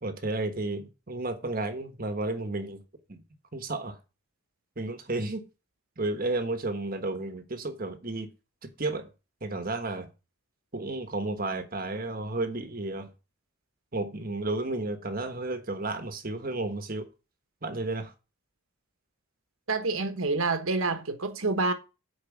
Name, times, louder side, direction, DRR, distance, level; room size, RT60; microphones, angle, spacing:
voice 1, 0.0-2.8 3.1-3.2 3.5-4.0 4.8-5.4 6.0-8.3 8.6-9.1 9.4-10.1 10.7-13.1 13.9-17.1 17.6-18.1, right 2 dB, 40° right, 1.3 m, -32 dB
voice 2, 19.7-21.7, right 3 dB, 75° right, 1.3 m, -27 dB
8.6 x 4.8 x 7.2 m
head